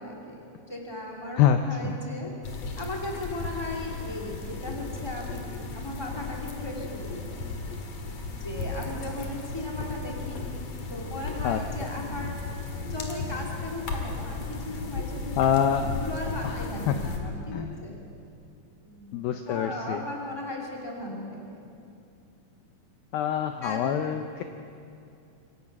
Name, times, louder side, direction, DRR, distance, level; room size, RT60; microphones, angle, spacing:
voice 1, 0.0-2.3 2.8-7.8 8.3-10.5 10.9-12.5 12.9-15.4 15.7-17.9 18.8-19.1 19.4-21.7 23.6-23.9, left 2 dB, 10° left, -1 dB, 1.3 m, -37 dB
sound 1, 2.4-17.2, left 3 dB, 50° left, 2.3 m, -35 dB
voice 2, 15.4-15.9 16.4-16.6 16.9-17.0 17.5-17.8 19.1-20.0 23.1-24.4, left 9 dB, 85° left, 7 dB, 2.1 m, -25 dB
26.5 x 17.0 x 6.1 m, 2.6 s
omnidirectional pair, 5.1 m